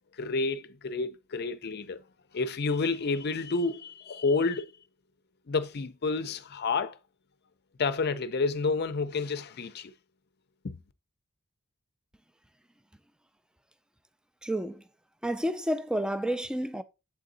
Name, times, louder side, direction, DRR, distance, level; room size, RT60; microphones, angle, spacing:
voice 1, 0.2-2.0 2.3-4.7 5.5-7.0 7.8-9.9 10.6-10.8, left 4 dB, 50° left, 0.5 m, -29 dB
voice 2, 14.4-14.8 15.2-16.8, equal, 5° right, 0.3 m, -30 dB
7.3 x 3.9 x 3.8 m
head